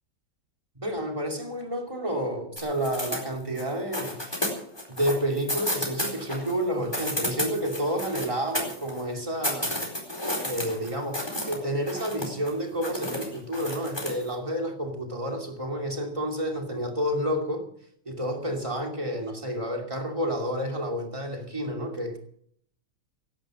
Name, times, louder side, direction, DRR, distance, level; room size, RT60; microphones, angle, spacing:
voice 1, 0.8-4.2 4.9-9.8 10.4-17.7 18.1-22.2, equal, 15° right, 2.6 m, -30 dB
sound 1, 2.6-3.7 3.9-6.5 6.8-9.0 9.4-11.6 11.9-12.5 12.8-14.2, left 1 dB, 10° left, 4.2 m, -31 dB
17.0 x 11.5 x 6.3 m
omnidirectional pair, 2.3 m